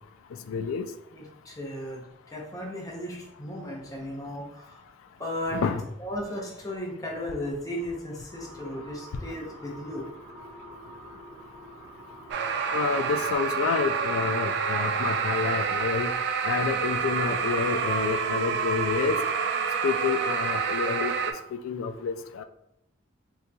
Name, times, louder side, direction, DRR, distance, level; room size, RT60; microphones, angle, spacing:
voice 1, 0.5-0.9 5.5-5.8 12.7-16.1 16.4-19.2 19.8-21.2 21.5-22.4, left 5 dB, 75° left, 10 dB, 0.3 m, -29 dB
voice 2, 1.1-4.8 5.2-5.7 6.0-10.1, equal, 15° left, -2 dB, 0.6 m, -35 dB
sound 1, 8.3-13.4, equal, 40° right, 1.2 m, -46 dB
sound 2, 12.3-21.3, right 6 dB, 60° right, 0.3 m, -28 dB
3.8 x 2.8 x 2.2 m, 0.80 s
head